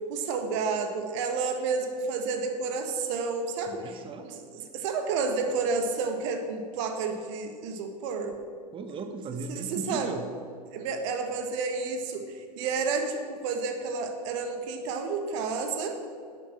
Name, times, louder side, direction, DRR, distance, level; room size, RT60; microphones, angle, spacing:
voice 1, 0.1-3.9 4.2-4.4 4.7-8.3 9.5-10.1 10.7-16.0, right 4 dB, 50° right, 6 dB, 1.4 m, -30 dB
voice 2, 3.7-4.3 8.7-10.3, right 4 dB, 25° right, 8 dB, 1.2 m, -37 dB
12.0 x 8.7 x 6.0 m, 2.2 s
figure-of-eight pair, 95°, 20 cm